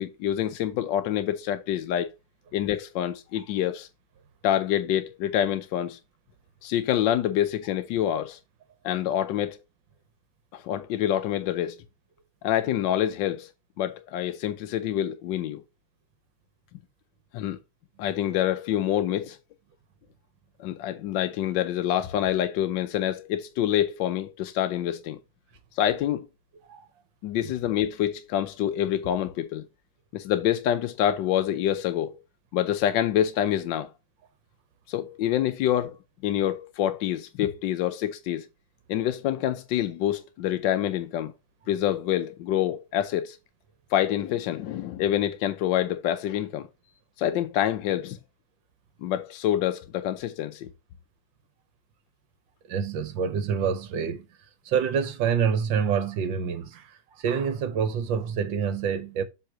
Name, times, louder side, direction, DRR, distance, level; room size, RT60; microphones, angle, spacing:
voice 1, 0.0-2.1 2.5-3.9 4.4-6.0 6.6-8.4 8.8-9.6 10.5-11.8 12.4-13.5 13.8-15.6 17.3-17.6 18.0-19.4 20.6-25.2 25.7-26.3 27.2-29.6 30.1-32.2 32.5-33.9 34.9-36.0 36.2-38.5 38.9-41.3 41.7-43.4 43.9-46.7 47.2-48.2 49.0-50.7, left 11 dB, 70° left, 1.2 m, -26 dB
voice 2, 52.7-54.3 54.6-59.2, right 7 dB, 70° right, 1.4 m, -27 dB
7.5 x 3.7 x 4.5 m
omnidirectional pair, 2.3 m